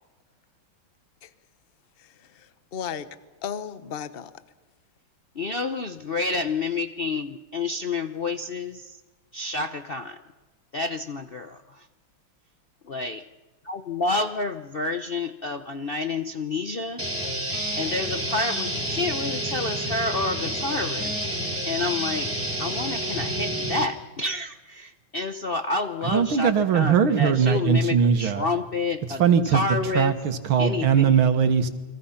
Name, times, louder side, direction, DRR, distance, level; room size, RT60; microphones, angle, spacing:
voice 1, 2.0-3.1 3.4-4.3, left 8 dB, 40° left, 12 dB, 0.9 m, -35 dB
voice 2, 5.3-9.0 9.3-10.2 10.7-11.9 12.9-13.3 13.6-17.0 17.8-21.1 21.7-22.3 22.6-30.2 30.6-31.2, left 3 dB, 65° left, 8 dB, 0.5 m, -29 dB
sound 1, 17.0-23.8, right 1 dB, 5° right, 2.9 m, -29 dB
voice 3, 26.1-28.5 29.2-29.6 29.9-31.7, right 7 dB, 80° right, 8 dB, 2.3 m, -20 dB
30.0 x 22.5 x 5.7 m, 1.3 s
omnidirectional pair, 2.3 m